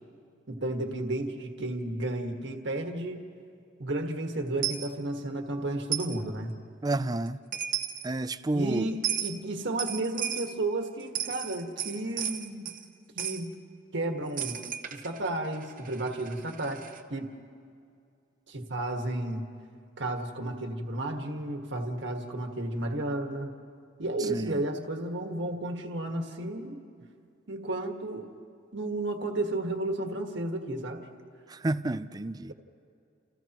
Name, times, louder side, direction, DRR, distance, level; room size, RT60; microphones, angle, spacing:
voice 1, 0.5-3.2 3.8-6.5 8.5-12.7 13.1-13.5 13.9-14.6 14.9-16.8 17.1-17.3 18.5-19.5 20.0-23.5 24.0-26.8 27.5-28.3 28.7-31.0, right 2 dB, 60° right, 3 dB, 1.6 m, -32 dB
Coin (dropping), 4.6-4.9 5.9-6.2 7.3-7.4 7.5-8.1 9.0-9.3 9.8-10.5 11.0-12.8 13.2-13.4 14.4-17.0, right 9 dB, 45° right, 0.9 m, -34 dB
voice 2, 6.8-7.4 8.0-8.9 24.2-24.7 31.5-32.5, right 2 dB, 20° right, 12 dB, 0.4 m, -30 dB
30.0 x 29.5 x 3.0 m, 2.4 s
head